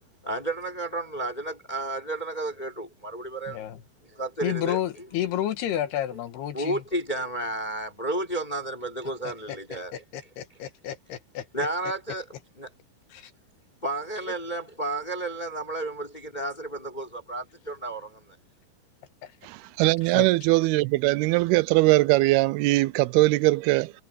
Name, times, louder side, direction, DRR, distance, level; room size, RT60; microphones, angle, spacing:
voice 1, 0.2-3.6 4.1-4.8 6.5-9.9 11.5-12.2 12.6-12.7 13.8-18.4, right 2 dB, 10° left, 3.3 m, -32 dB
voice 2, 3.5-3.8 4.4-6.8 9.3-9.6 9.9-11.5 13.1-13.3 19.2-19.3 20.1-20.3, left 11 dB, 85° left, 3.6 m, -31 dB
voice 3, 19.4-23.9, right 20 dB, 85° right, 2.5 m, -21 dB
omnidirectional pair, 4.5 m